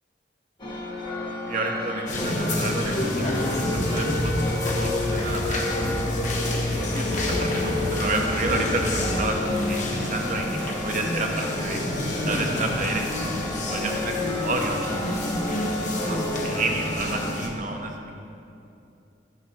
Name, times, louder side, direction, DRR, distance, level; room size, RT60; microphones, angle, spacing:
sound 1, 0.6-17.3, left 2 dB, 25° left, 1.2 m, -33 dB
voice 1, 1.5-6.0 6.3-11.8 12.2-15.2 16.0-18.2, right 2 dB, 40° right, 2 dB, 1.0 m, -30 dB
sound 2, 2.1-17.5, left 1 dB, 40° left, 1.3 m, -29 dB
sound 3, 3.3-9.2, left 1 dB, 85° left, 2.2 m, -29 dB
13.0 x 10.5 x 3.0 m, 2.7 s
head